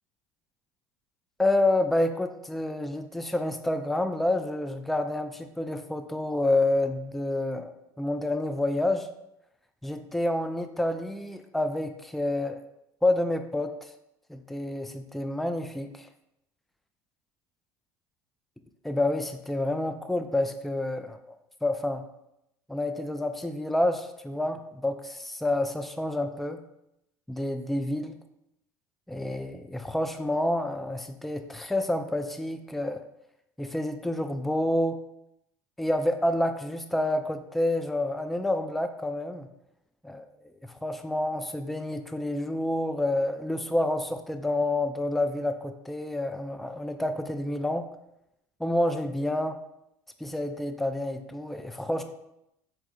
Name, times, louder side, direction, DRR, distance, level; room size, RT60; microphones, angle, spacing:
voice 1, 1.4-7.7 8.0-9.1 9.8-12.6 13.0-13.9 14.3-16.1 18.8-21.2 21.6-22.0 22.7-26.6 27.3-28.2 29.1-33.0 33.6-35.0 35.8-39.5 40.0-40.3 40.6-47.9 48.6-49.6 50.2-52.0, left 1 dB, ahead, 7 dB, 0.3 m, -28 dB
4.2 x 3.4 x 2.4 m, 0.82 s
hypercardioid pair, 75°, 10 cm